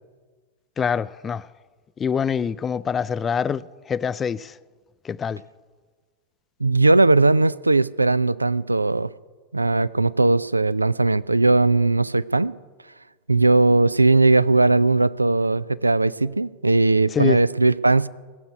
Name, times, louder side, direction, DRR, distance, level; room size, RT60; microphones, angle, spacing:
voice 1, 0.8-1.5 2.0-4.5 5.0-5.4 17.1-17.4, left 7 dB, 20° left, 0.4 m, -25 dB
voice 2, 6.6-9.1 9.5-12.5 13.3-18.1, right 2 dB, 80° right, 0.3 m, -18 dB
17.0 x 8.1 x 9.6 m
figure-of-eight pair, 90°, 0 cm